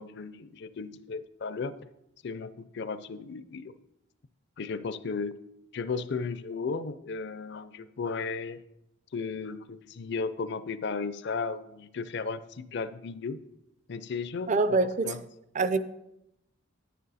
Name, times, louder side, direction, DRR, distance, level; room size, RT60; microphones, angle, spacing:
voice 1, 0.0-1.7 2.2-3.7 4.6-5.3 5.7-8.6 9.1-13.4 13.9-14.8 15.0-15.2, left 4 dB, 55° left, 0.5 m, -35 dB
voice 2, 14.5-15.1 15.6-15.9, right 3 dB, 35° right, 0.4 m, -25 dB
9.8 x 9.3 x 4.1 m
head